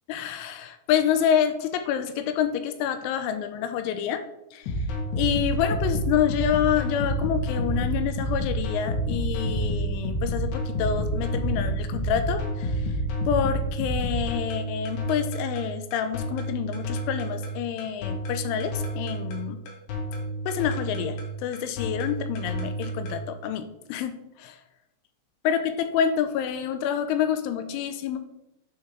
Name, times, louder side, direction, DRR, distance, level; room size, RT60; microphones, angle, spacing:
voice 1, 0.1-4.2 4.5-4.9 5.1-12.9 13.3-19.6 20.5-24.6 25.4-28.2, left 9 dB, 85° left, 9 dB, 3.1 m, -27 dB
sound 1, 4.6-23.2, right 1 dB, 70° left, 3.1 m, -29 dB
9.6 x 5.7 x 3.4 m, 0.85 s
omnidirectional pair, 5.5 m